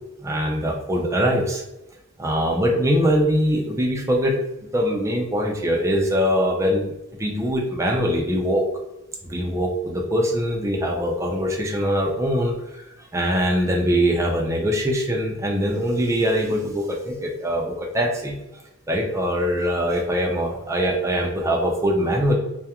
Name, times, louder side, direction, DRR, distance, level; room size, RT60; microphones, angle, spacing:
voice 1, 0.2-1.6 2.2-4.4 4.7-6.9 7.2-8.7 9.2-12.8 13.1-18.4 18.9-22.4, equal, 15° right, 0 dB, 0.4 m, -22 dB
2.3 x 2.1 x 2.8 m, 0.90 s
head